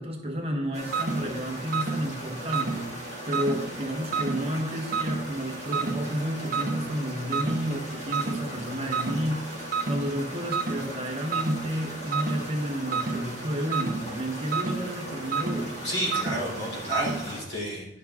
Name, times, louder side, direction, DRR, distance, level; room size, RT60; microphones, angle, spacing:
voice 1, 0.0-3.0 3.3-15.8, equal, 35° right, 2 dB, 1.2 m, -31 dB
sound 1, 0.7-17.4, equal, 40° left, 2.3 m, -40 dB
sound 2, 0.9-17.4, right 4 dB, 50° right, 1.0 m, -32 dB
voice 2, 15.8-17.9, equal, 70° left, -3 dB, 3.3 m, -31 dB
10.5 x 6.5 x 3.6 m, 0.82 s
head